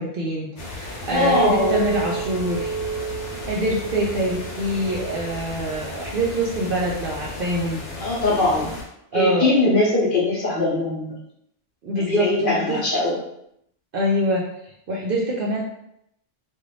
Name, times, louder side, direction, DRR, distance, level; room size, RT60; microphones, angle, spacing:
voice 1, 0.0-2.7 3.4-7.8 9.1-9.9 11.8-12.8 13.9-15.6, right 1 dB, 60° right, -4 dB, 0.6 m, -25 dB
sound 1, 0.6-8.8, left 2 dB, 70° left, 1.0 m, -35 dB
voice 2, 1.1-1.8 8.0-8.7 9.1-11.2 12.0-13.1, left 2 dB, 50° left, -5 dB, 0.8 m, -21 dB
Chink clink, 1.1-6.4, right 6 dB, 25° left, 0.5 m, -31 dB
2.5 x 2.3 x 3.1 m, 0.76 s
omnidirectional pair, 1.3 m